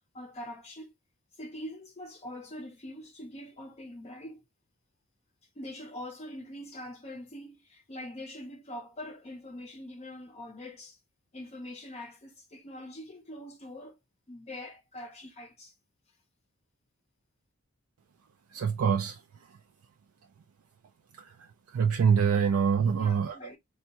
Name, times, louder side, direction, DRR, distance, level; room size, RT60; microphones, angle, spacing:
voice 1, 0.1-0.9 1.3-4.4 5.6-11.0 11.3-14.0 14.3-15.7 22.9-23.6, left 1 dB, 30° left, 0.5 m, -43 dB
voice 2, 18.5-19.2 21.7-23.4, right 6 dB, 90° right, 0.4 m, -24 dB
3.5 x 2.2 x 2.8 m
head